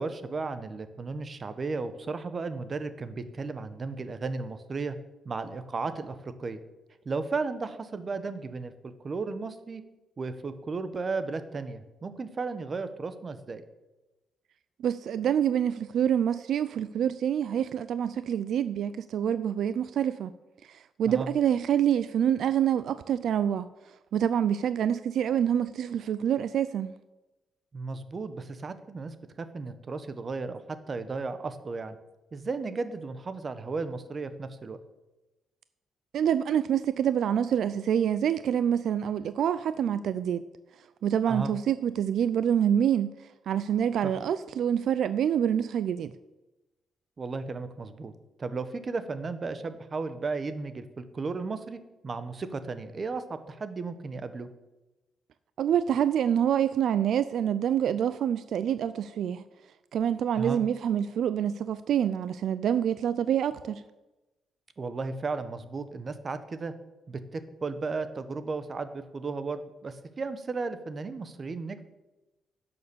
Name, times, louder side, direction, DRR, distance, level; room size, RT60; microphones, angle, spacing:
voice 1, 0.0-5.0 5.2-6.6 7.0-9.8 10.2-13.6 21.1-21.3 27.7-32.0 32.3-34.8 41.3-41.5 44.0-44.1 47.2-48.1 48.4-54.5 60.4-60.6 64.8-66.7 67.1-71.8, right 4 dB, 30° right, 0.9 m, -34 dB
voice 2, 14.8-20.3 20.6-26.9 36.1-40.5 41.0-43.1 43.5-46.1 55.6-59.4 59.9-63.8, right 9 dB, 65° right, 0.3 m, -26 dB
11.0 x 6.9 x 6.8 m
cardioid pair, 135°, 0 cm